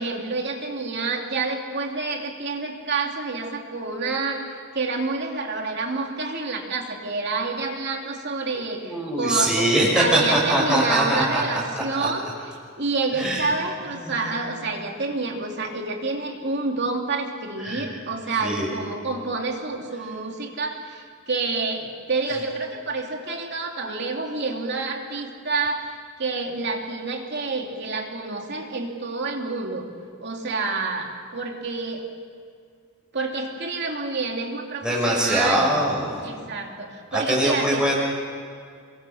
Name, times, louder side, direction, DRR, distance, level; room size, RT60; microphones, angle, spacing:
voice 1, 0.0-29.9 30.2-32.0 33.1-35.7 36.2-37.9, right 3 dB, 50° right, 2 dB, 2.8 m, -28 dB
voice 2, 8.8-11.4 11.7-12.1 13.2-13.5 14.0-14.3 17.6-17.9 18.4-18.7 34.8-36.2 37.1-38.0, right 1 dB, 5° right, -4 dB, 5.9 m, -22 dB
28.0 x 23.0 x 5.8 m, 2.2 s
head